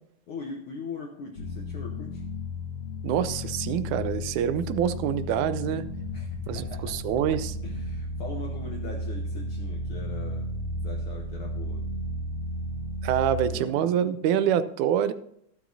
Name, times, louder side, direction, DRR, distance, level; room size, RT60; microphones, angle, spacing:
voice 1, 0.3-2.3 6.1-7.0 7.6-10.5 10.8-11.9 13.5-14.1, left 4 dB, 75° left, 2 dB, 1.2 m, -40 dB
sound 1, 1.4-13.5, left 1 dB, 55° left, 2.5 m, -33 dB
voice 2, 3.0-5.9 6.5-7.6 13.0-15.1, right 9 dB, 80° right, 13 dB, 2.0 m, -26 dB
12.5 x 12.0 x 2.7 m, 0.70 s
omnidirectional pair, 3.5 m